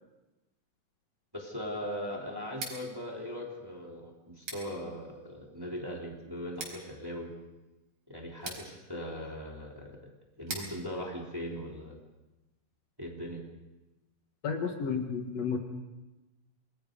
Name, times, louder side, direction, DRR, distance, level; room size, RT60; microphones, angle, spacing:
voice 1, 1.3-7.3 8.1-10.1 10.4-12.0 13.0-13.4, equal, 5° right, -1 dB, 3.0 m, -39 dB
Scissors, 2.5-12.3, right 3 dB, 75° right, 6.2 m, -48 dB
voice 2, 14.4-15.6, left 6 dB, 60° left, 4 dB, 2.5 m, -32 dB
27.5 x 21.5 x 5.3 m, 1.0 s
omnidirectional pair, 3.6 m